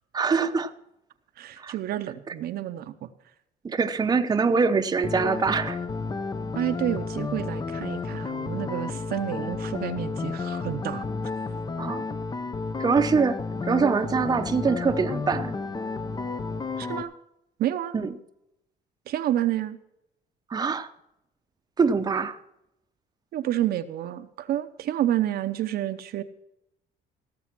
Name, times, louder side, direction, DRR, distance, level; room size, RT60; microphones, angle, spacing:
voice 1, 0.1-0.7 1.6-1.7 2.3-2.4 3.6-5.8 11.8-12.0 12.8-13.4 13.6-15.5 17.9-18.1 20.5-20.9 21.8-22.4, right 5 dB, 25° right, 8 dB, 0.8 m, -24 dB
voice 2, 1.4-3.1 6.5-11.1 16.8-17.1 17.6-17.9 19.1-19.8 23.3-26.2, right 12 dB, 65° right, 9 dB, 0.8 m, -29 dB
sound 1, 5.0-17.0, left 4 dB, 25° left, 0.6 m, -32 dB
16.5 x 7.0 x 6.0 m, 0.82 s
cardioid pair, 110°, 17 cm